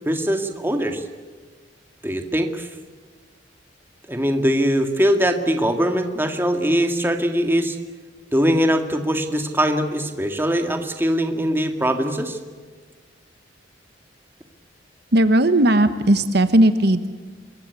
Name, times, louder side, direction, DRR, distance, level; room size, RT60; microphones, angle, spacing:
voice 1, 0.0-1.0 2.0-2.7 4.1-7.8 8.3-12.4, equal, 10° right, 5 dB, 2.0 m, -21 dB
voice 2, 15.1-17.1, right 1 dB, 60° right, 10 dB, 1.2 m, -16 dB
26.0 x 22.5 x 8.3 m, 1.4 s
head